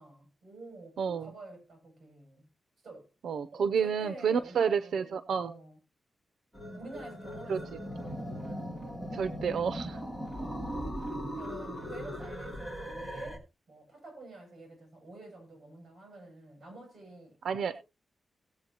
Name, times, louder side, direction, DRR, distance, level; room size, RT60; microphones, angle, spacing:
voice 1, 0.0-2.5 2.8-3.1 3.5-5.8 6.8-8.7 10.3-17.4, right 2 dB, 40° right, 6.9 m, -49 dB
voice 2, 1.0-1.3 3.2-5.5 7.5-7.6 9.1-10.0 17.4-17.8, right 6 dB, 85° right, 0.6 m, -30 dB
sound 1, 6.5-13.4, equal, 5° left, 2.9 m, -39 dB
17.5 x 7.7 x 2.9 m
wide cardioid pair, 170°, 0 cm